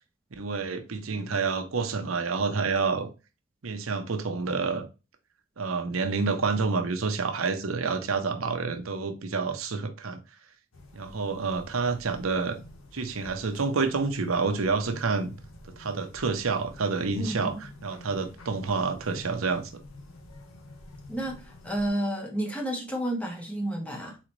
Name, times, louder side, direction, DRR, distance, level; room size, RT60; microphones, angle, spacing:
voice 1, 0.3-3.1 3.6-4.8 5.6-10.2 10.9-12.6 12.9-15.3 15.8-19.7, right 4 dB, 85° right, 0.7 m, -28 dB
sound 1, 10.7-21.9, left 1 dB, 85° left, 1.0 m, -49 dB
voice 2, 17.2-17.5 21.1-24.2, right 1 dB, 5° left, 1.0 m, -31 dB
4.1 x 3.9 x 3.1 m
head